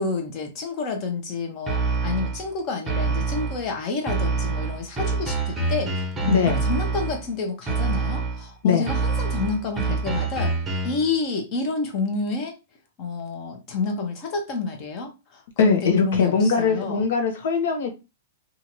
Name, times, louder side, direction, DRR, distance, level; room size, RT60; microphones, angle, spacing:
voice 1, 0.0-10.5 10.8-12.5 13.0-17.0, left 4 dB, 40° left, 0.9 m, -29 dB
sound 1, 1.7-2.5 2.9-3.7 4.1-7.3 7.7-8.5 8.9-11.1, right 4 dB, 10° right, 0.7 m, -26 dB
voice 2, 6.3-6.6 8.6-8.9 15.6-17.9, left 5 dB, 70° left, 1.0 m, -21 dB
2.7 x 2.5 x 3.0 m
hypercardioid pair, 135°, 0 cm